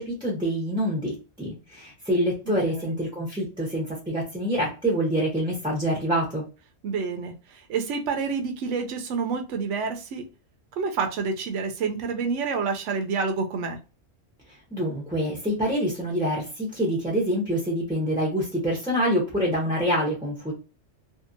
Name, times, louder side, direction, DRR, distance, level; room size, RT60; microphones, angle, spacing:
voice 1, 0.0-6.4 14.7-20.5, equal, 5° right, -3 dB, 0.6 m, -26 dB
voice 2, 2.5-2.9 6.8-10.3 10.8-13.8, right 5 dB, 80° right, 4 dB, 0.9 m, -28 dB
2.7 x 2.4 x 2.5 m, 0.31 s
omnidirectional pair, 1.2 m